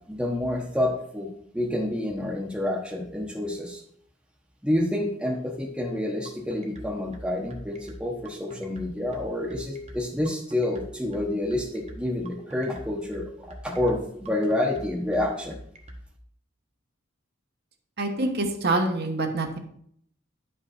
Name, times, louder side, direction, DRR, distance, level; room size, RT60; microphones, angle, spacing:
voice 1, 0.1-1.3 1.5-3.8 4.6-15.6, left 1 dB, 5° right, -1 dB, 1.1 m, -28 dB
sound 1, 6.2-16.0, right 1 dB, 35° right, 1.1 m, -43 dB
voice 2, 18.0-19.6, right 2 dB, 55° right, 4 dB, 1.1 m, -26 dB
10.0 x 5.5 x 4.3 m, 0.67 s
head